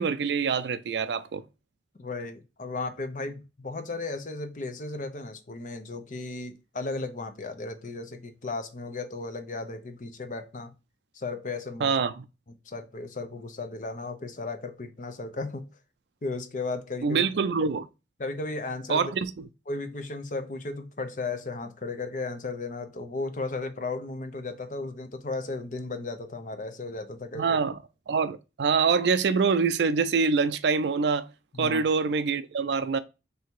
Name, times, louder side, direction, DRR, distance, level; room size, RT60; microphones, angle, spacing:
voice 1, 0.0-1.4 11.8-12.3 17.0-17.9 18.9-19.5 27.3-27.8 28.1-31.3 31.6-33.0, right 5 dB, 75° right, 0.4 m, -25 dB
voice 2, 2.0-10.7 11.1-11.9 12.7-15.7 16.2-17.2 18.2-19.1 19.7-27.6 31.5-31.8, left 3 dB, 45° left, 0.6 m, -35 dB
3.4 x 2.8 x 4.5 m
head